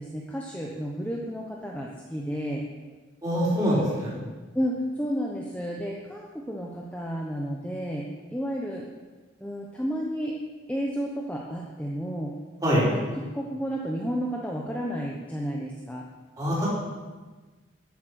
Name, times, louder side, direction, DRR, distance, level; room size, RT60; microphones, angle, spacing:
voice 1, 0.0-2.6 3.5-3.7 4.5-8.8 9.4-10.4 10.7-12.3 12.9-13.1 13.3-16.0, equal, 5° left, -2 dB, 1.0 m, -32 dB
voice 2, 3.2-4.1 12.6-12.8 16.4-16.7, equal, 20° right, -7 dB, 4.9 m, -24 dB
13.5 x 8.2 x 6.5 m, 1.3 s
head